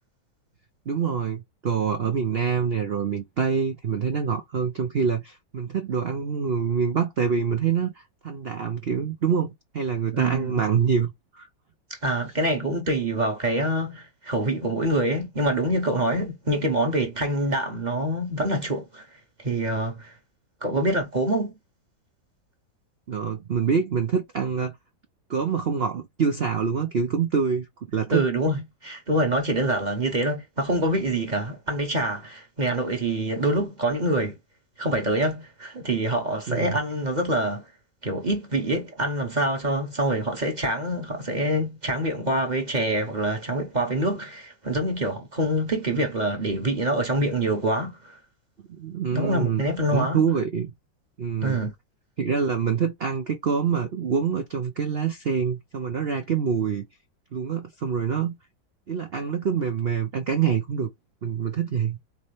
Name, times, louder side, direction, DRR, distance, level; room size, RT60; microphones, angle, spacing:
voice 1, 0.9-11.5 23.1-24.7 25.3-28.2 36.5-36.8 48.7-49.6 49.9-50.7 51.2-51.6 52.2-56.9 57.3-58.4 58.9-60.9 61.2-62.0, right 6 dB, 85° right, 0.5 m, -26 dB
voice 2, 10.1-10.6 12.0-19.1 19.4-20.1 20.6-21.5 28.1-34.3 34.8-37.6 38.0-48.0 49.1-50.2 51.4-51.7, right 1 dB, 35° right, 0.8 m, -25 dB
4.2 x 3.3 x 3.2 m
omnidirectional pair, 2.1 m